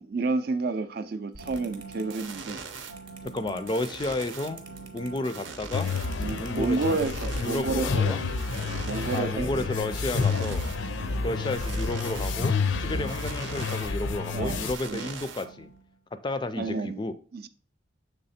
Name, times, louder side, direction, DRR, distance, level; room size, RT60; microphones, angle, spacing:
voice 1, 0.0-2.6 5.1-5.3 6.2-8.2 8.6-9.7 11.0-11.2 12.9-13.1 14.3-15.1 16.6-17.0 17.3-17.5, right 3 dB, 50° right, 0.4 m, -30 dB
sound 1, 1.3-16.0, right 4 dB, 80° right, 0.7 m, -42 dB
sound 2, 1.4-7.8, right 5 dB, 25° right, 0.8 m, -48 dB
voice 2, 3.3-4.6 4.9-5.9 6.4-7.0 7.4-8.2 9.1-10.7 11.2-15.7 16.1-17.1, left 2 dB, 25° left, 0.3 m, -32 dB
sound 3, 5.7-14.7, left 5 dB, 75° left, 0.5 m, -29 dB
6.7 x 3.4 x 4.2 m
head